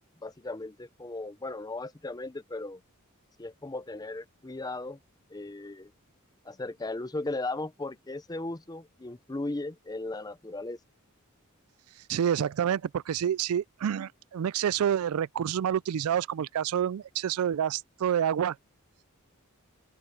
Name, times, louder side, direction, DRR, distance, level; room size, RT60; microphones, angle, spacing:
voice 1, 0.2-2.8 3.4-5.0 5.3-5.9 6.4-10.8, left 2 dB, 20° left, 0.6 m, -36 dB
voice 2, 12.1-18.6, right 9 dB, 75° right, 0.3 m, -28 dB
open air
head